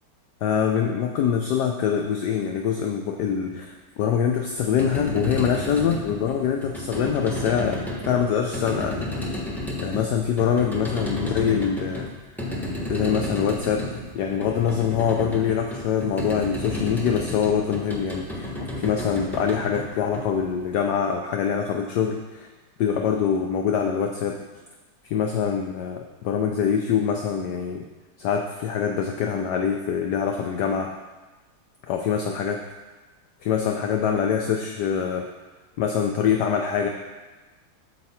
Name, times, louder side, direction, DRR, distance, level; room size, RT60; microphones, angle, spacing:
voice 1, 0.4-7.8 8.1-9.1 9.8-12.1 12.9-22.5 22.8-24.4 25.0-27.8 28.2-30.9 31.9-32.6 33.4-35.3 35.8-36.9, left 7 dB, 70° left, 3 dB, 1.0 m, -24 dB
sound 1, 4.6-20.7, left 1 dB, ahead, 0.6 m, -32 dB
8.3 x 6.6 x 4.3 m, 1.2 s
omnidirectional pair, 2.3 m